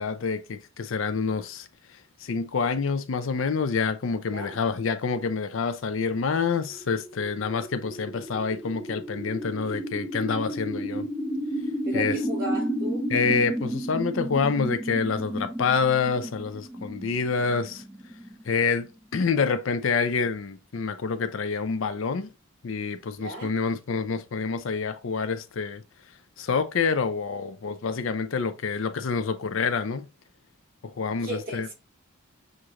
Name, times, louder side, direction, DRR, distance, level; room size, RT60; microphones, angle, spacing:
voice 1, 0.0-1.7 2.2-11.1 11.9-12.1 13.1-17.8 18.5-22.3 22.6-25.8 26.4-30.1 30.8-31.7, left 5 dB, 65° left, 0.5 m, -27 dB
sound 1, 6.8-18.9, equal, ahead, 0.5 m, -32 dB
voice 2, 11.8-13.1 23.1-23.5 31.2-31.7, right 1 dB, 45° right, 2.3 m, -35 dB
6.4 x 2.5 x 2.9 m
head